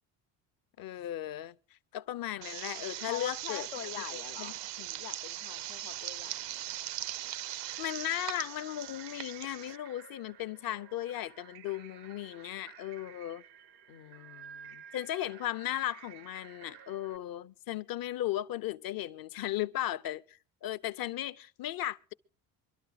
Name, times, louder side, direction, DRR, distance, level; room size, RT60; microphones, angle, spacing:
voice 1, 0.8-1.6 1.9-3.7 4.1-4.5 4.8-5.0 7.5-13.4 14.9-22.1, left 13 dB, 45° left, 0.6 m, -36 dB
sound 1, 2.4-9.8, right 14 dB, 60° right, 0.6 m, -40 dB
voice 2, 3.0-4.6 5.0-6.8 13.9-14.9, left 12 dB, 80° left, 1.0 m, -44 dB
sound 2, 7.6-17.2, right 9 dB, 80° right, 0.9 m, -53 dB
23.5 x 12.0 x 4.0 m
hypercardioid pair, 70°, 50 cm